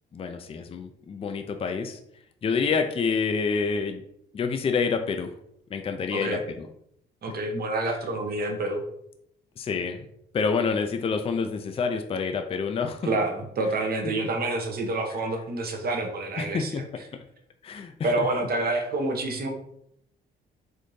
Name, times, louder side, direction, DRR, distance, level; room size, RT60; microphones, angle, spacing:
voice 1, 0.1-2.0 2.4-4.0 4.3-5.3 5.7-6.7 7.8-7.9 9.6-10.1 10.3-13.1 16.4-16.8 17.6-18.1, left 5 dB, 30° left, 6 dB, 0.4 m, -27 dB
voice 2, 6.1-6.4 7.2-8.8 13.0-16.8 18.0-19.5, right 2 dB, 50° right, 4 dB, 0.8 m, -28 dB
4.2 x 2.6 x 3.1 m, 0.73 s
cardioid pair, 90°, 20 cm